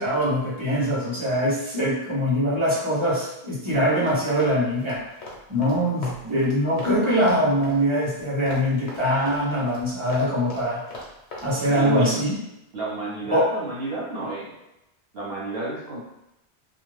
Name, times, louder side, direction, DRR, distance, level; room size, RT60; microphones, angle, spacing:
voice 1, 0.0-5.1 5.5-10.8 11.4-12.4 13.3-13.5, equal, 30° right, -8 dB, 0.9 m, -23 dB
Run, 3.6-7.0 7.2-11.5, left 2 dB, 85° left, 1.1 m, -39 dB
voice 2, 11.7-12.2 12.7-14.5 15.1-16.0, right 2 dB, 65° right, -5 dB, 1.2 m, -30 dB
2.5 x 2.4 x 3.2 m, 0.87 s
omnidirectional pair, 1.1 m